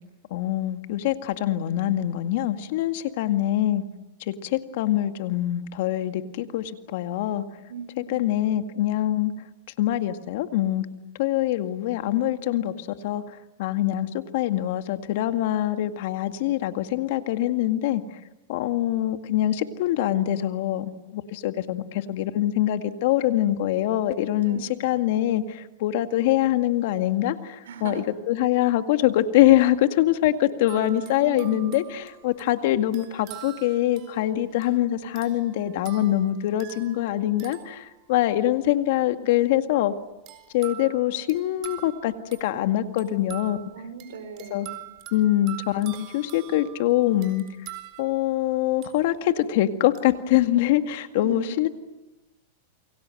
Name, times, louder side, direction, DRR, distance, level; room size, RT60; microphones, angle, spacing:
voice 1, 0.3-3.8 4.3-7.4 8.1-9.3 9.8-10.9 11.2-13.2 13.6-18.0 18.5-39.9 40.5-42.1 42.4-43.6 44.5-44.7 45.1-47.4 48.0-51.7, left 13 dB, 60° left, 9 dB, 2.0 m, -24 dB
voice 2, 7.7-8.3 24.4-24.7 27.6-28.1 31.1-31.8 43.7-44.7 51.1-51.5, right 5 dB, 80° right, 7 dB, 5.6 m, -38 dB
sound 1, 30.7-38.5 40.3-49.5 49.9-50.2, right 15 dB, 40° right, 4.3 m, -45 dB
28.5 x 23.5 x 7.9 m, 1.0 s
supercardioid pair, 140°, 0 cm